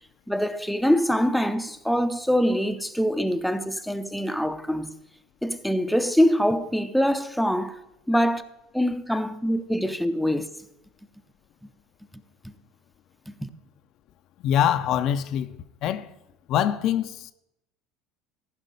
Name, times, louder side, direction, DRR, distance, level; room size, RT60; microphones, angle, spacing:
voice 1, 0.3-5.0 5.4-7.8 8.1-8.4 8.7-10.5 12.4-12.5 13.3-13.5, equal, ahead, 0.6 m, -24 dB
voice 2, 14.4-15.6 15.8-16.1 16.5-17.3, left 10 dB, 60° left, 0.5 m, -24 dB
14.0 x 5.5 x 5.3 m
supercardioid pair, 100°, 0 cm